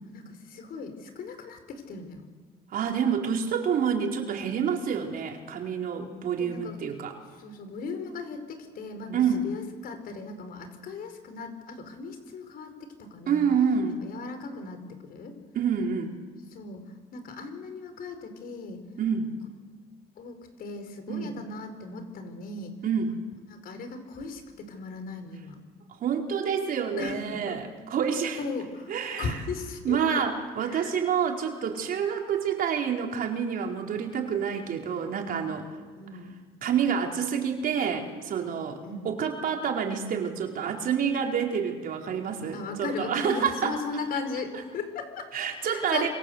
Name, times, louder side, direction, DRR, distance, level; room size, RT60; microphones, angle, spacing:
voice 1, 0.0-2.3 6.0-6.8 7.4-13.4 14.0-15.4 16.5-16.8 17.1-18.8 20.2-22.8 23.5-25.6 27.0-27.6 28.4-28.9 29.2-30.0 30.6-30.9 36.0-36.4 38.8-39.1 42.5-45.2 45.6-46.1, left 4 dB, 60° left, 8 dB, 5.0 m, -37 dB
voice 2, 2.7-7.2 9.1-9.5 13.3-14.0 15.5-16.2 19.0-19.3 21.1-21.4 22.8-23.2 26.0-28.4 28.9-29.4 29.8-35.7 36.6-43.7 45.3-46.1, right 7 dB, 60° right, 2 dB, 4.5 m, -28 dB
27.5 x 26.0 x 8.1 m, 1.5 s
cardioid pair, 110°, 17 cm